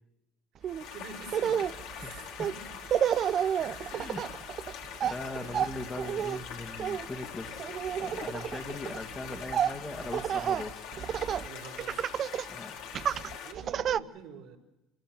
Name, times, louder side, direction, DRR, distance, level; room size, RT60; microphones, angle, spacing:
sound 1, 0.6-13.5, left 8 dB, 65° left, 2.9 m, -43 dB
Laughter, 0.6-0.8 1.3-11.5 11.8-12.5 12.9-14.0, right 9 dB, 50° right, 0.7 m, -31 dB
voice 1, 0.9-1.6 1.9-2.6 3.5-4.2 5.3-5.6 7.4-7.5 11.4-12.0 13.4-14.6, right 6 dB, 65° right, 2 dB, 4.6 m, -46 dB
voice 2, 3.9-4.2 5.0-7.7 8.0-10.9 12.5-12.8, left 2 dB, 25° left, 6 dB, 2.1 m, -40 dB
25.0 x 15.5 x 7.7 m, 1.0 s
hypercardioid pair, 65°, 0 cm